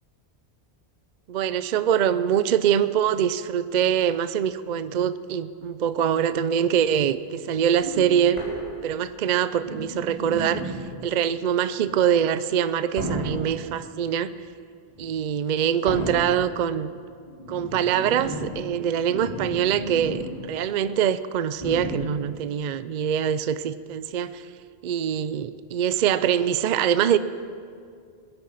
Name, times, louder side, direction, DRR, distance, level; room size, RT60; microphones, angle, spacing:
voice 1, 1.3-8.4 8.8-10.8 11.0-14.3 15.0-16.9 17.5-24.5 24.8-27.2, right 9 dB, 55° right, 14 dB, 0.6 m, -24 dB
sound 1, 7.7-9.1 9.6-11.0 11.8-12.1 12.9-13.6 14.9-15.1 15.8-16.5 17.3-20.5 20.8-20.9 21.6-22.3 23.2-23.3, equal, 35° left, 4.2 m, -34 dB
21.0 x 10.5 x 5.6 m, 2.2 s
omnidirectional pair, 1.1 m